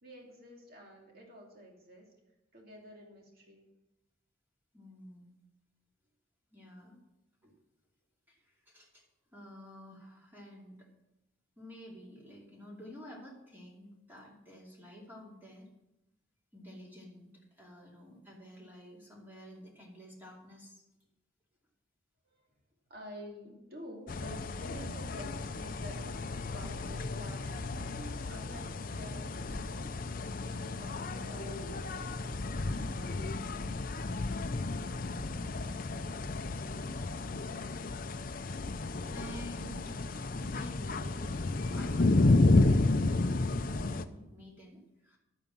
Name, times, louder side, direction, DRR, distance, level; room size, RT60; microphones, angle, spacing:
voice 1, 0.0-2.1 2.5-3.7 22.2-22.6 22.9-30.0 30.4-33.6, equal, 50° right, -1 dB, 2.8 m, -50 dB
voice 2, 4.7-5.3 6.5-7.0 7.4-7.6 8.3-9.0 9.3-10.9 11.6-15.7 16.5-17.3 17.6-20.8 30.7-30.9 34.7-35.2 36.5-36.9 39.0-45.2, equal, 10° right, -3 dB, 2.7 m, -51 dB
sound 1, 24.1-44.1, left 2 dB, 45° left, 0.6 m, -32 dB
12.0 x 9.2 x 6.1 m, 0.92 s
head